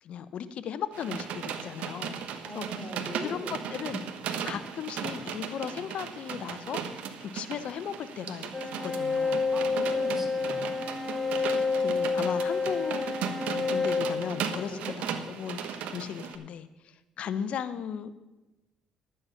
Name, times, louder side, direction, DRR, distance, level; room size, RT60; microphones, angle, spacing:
voice 1, 0.0-2.9 3.1-4.1 4.4-8.5 8.8-9.5 11.4-13.2 13.7-18.1, left 8 dB, 65° left, 13 dB, 0.8 m, -37 dB
sound 1, 0.9-16.4, right 7 dB, 75° right, 1.1 m, -37 dB
voice 2, 2.4-3.6 9.5-10.7 14.6-15.0, equal, 10° right, 2 dB, 2.9 m, -40 dB
sound 2, 8.5-15.0, left 4 dB, 15° left, 1.2 m, -29 dB
12.0 x 8.7 x 5.7 m, 1.1 s
cardioid pair, 90°, 2 cm